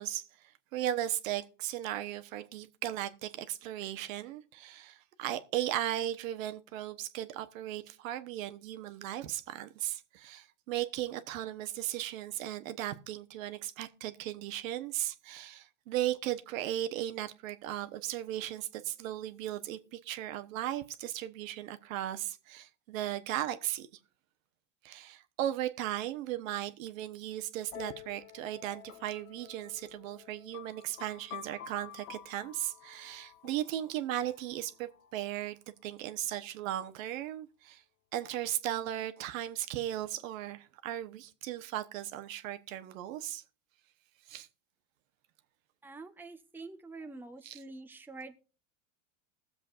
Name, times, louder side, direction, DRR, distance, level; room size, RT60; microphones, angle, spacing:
voice 1, 0.0-23.9 24.8-37.8 38.1-43.4 44.3-44.5 47.4-47.6, right 13 dB, 70° right, 1.1 m, -37 dB
sound 1, 27.7-35.3, left 12 dB, 75° left, 1.3 m, -50 dB
voice 2, 45.8-48.4, right 3 dB, 5° right, 0.9 m, -46 dB
20.5 x 7.4 x 2.5 m
supercardioid pair, 115°, 41 cm